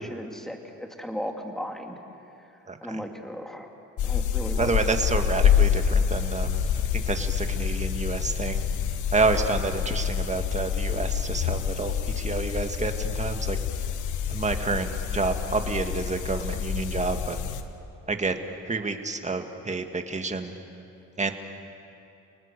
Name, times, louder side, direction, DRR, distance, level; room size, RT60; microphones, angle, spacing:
voice 1, 0.0-2.0 2.8-3.7 4.0-4.7, equal, ahead, 3 dB, 2.4 m, -36 dB
voice 2, 2.7-3.0 4.6-8.6 9.1-13.6 14.3-17.4 18.1-18.3 18.7-20.5 21.2-21.3, right 3 dB, 25° right, 6 dB, 1.8 m, -29 dB
sound 1, 4.0-17.6, left 8 dB, 80° left, 1.3 m, -27 dB
29.5 x 19.0 x 6.8 m, 2.7 s
cardioid pair, 90°, 30 cm